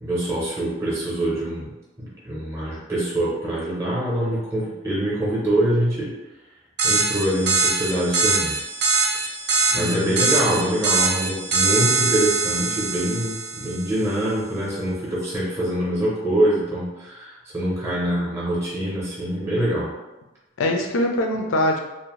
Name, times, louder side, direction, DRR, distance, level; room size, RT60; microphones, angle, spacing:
voice 1, 0.0-1.7 2.0-6.1 6.8-8.5 9.7-19.9, right 1 dB, 15° right, -7 dB, 0.6 m, -24 dB
sound 1, 6.8-13.9, right 4 dB, 55° right, 0.4 m, -23 dB
voice 2, 9.7-10.8 20.6-21.8, left 1 dB, 75° left, 3 dB, 0.4 m, -24 dB
2.6 x 2.1 x 2.9 m, 1.1 s
head